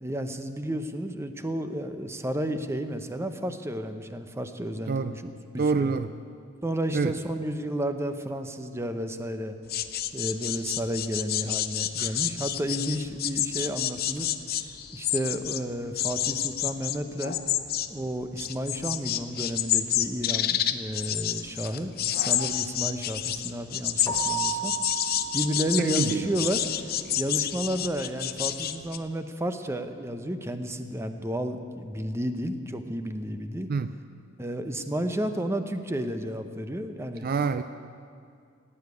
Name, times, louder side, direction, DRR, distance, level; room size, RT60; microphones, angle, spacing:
voice 1, 0.0-5.9 6.6-9.6 10.1-14.3 14.9-17.4 17.9-24.7 25.3-26.6 27.2-33.7 34.4-37.3, equal, 15° right, 8 dB, 0.7 m, -32 dB
voice 2, 5.6-6.1 6.9-7.1 25.8-26.3 33.7-33.9 37.2-37.6, right 5 dB, 50° right, 12 dB, 0.4 m, -26 dB
sound 1, 9.7-15.6 15.9-29.0, left 11 dB, 50° left, 0.6 m, -29 dB
Keyboard (musical), 24.1-26.5, right 8 dB, 20° left, 1.1 m, -34 dB
16.0 x 8.9 x 9.4 m, 2.4 s
head